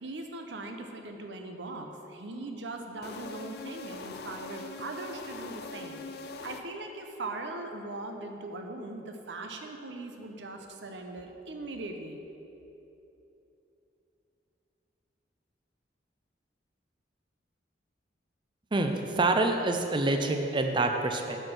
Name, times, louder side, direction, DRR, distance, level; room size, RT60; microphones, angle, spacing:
voice 1, 0.0-6.0 6.4-12.2, right 2 dB, 80° right, 4 dB, 0.8 m, -40 dB
sound 1, 3.0-7.1, left 3 dB, 60° left, 0.4 m, -42 dB
voice 2, 18.7-21.4, right 2 dB, 25° right, 5 dB, 0.5 m, -27 dB
8.8 x 4.3 x 6.5 m, 3.0 s
head